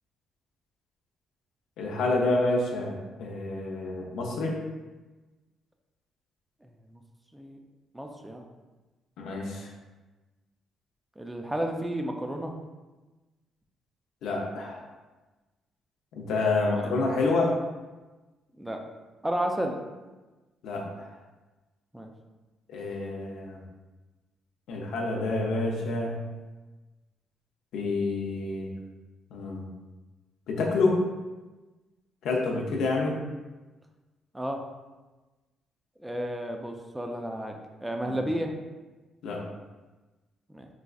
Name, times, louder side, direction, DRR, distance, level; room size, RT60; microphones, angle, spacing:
voice 1, 1.8-4.6 9.2-9.7 14.2-14.8 16.2-17.6 20.6-21.1 22.7-23.6 24.7-26.2 27.7-28.7 29.3-29.6 30.5-31.0 32.2-33.2 38.0-38.2 39.2-39.4, left 3 dB, 80° left, 0 dB, 0.5 m, -28 dB
voice 2, 7.9-8.4 11.2-12.5 16.8-16.9 18.6-18.8 19.2-19.8 21.9-22.1 34.3-34.6 36.0-37.6 37.8-38.5 40.5-40.7, right 1 dB, 10° right, 3 dB, 0.4 m, -32 dB
4.0 x 2.4 x 2.3 m, 1.2 s
cardioid pair, 90°, 0 cm